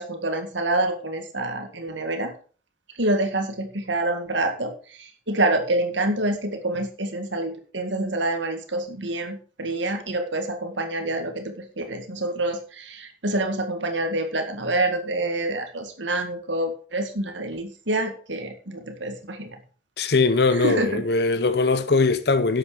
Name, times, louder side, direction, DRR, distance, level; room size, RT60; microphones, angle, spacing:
voice 1, 0.0-2.3 3.0-19.6 20.5-21.0, right 2 dB, 80° right, 2.0 m, -27 dB
voice 2, 20.0-22.6, left 3 dB, 60° left, 0.7 m, -21 dB
11.5 x 7.9 x 4.9 m
head